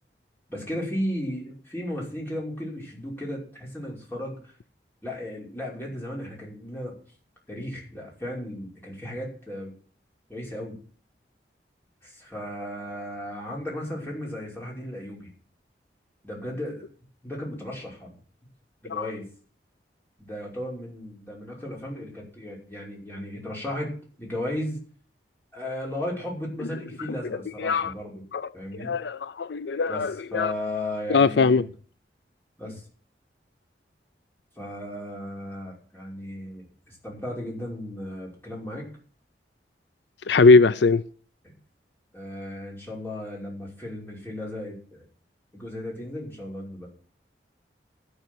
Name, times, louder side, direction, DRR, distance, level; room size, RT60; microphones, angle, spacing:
voice 1, 0.5-4.5 5.0-7.0 7.5-9.7 10.3-10.8 12.0-15.3 16.2-16.9 17.2-18.1 18.8-19.2 20.2-24.8 25.5-28.2 28.5-29.0 29.9-31.6 32.6-32.8 34.6-38.9 42.1-45.0 45.5-46.9, left 1 dB, 10° left, 5.5 m, -35 dB
voice 2, 27.6-27.9 28.3-28.5 28.8-30.5 31.1-31.7 40.3-41.0, left 4 dB, 80° left, 0.5 m, -20 dB
13.5 x 6.8 x 8.0 m
head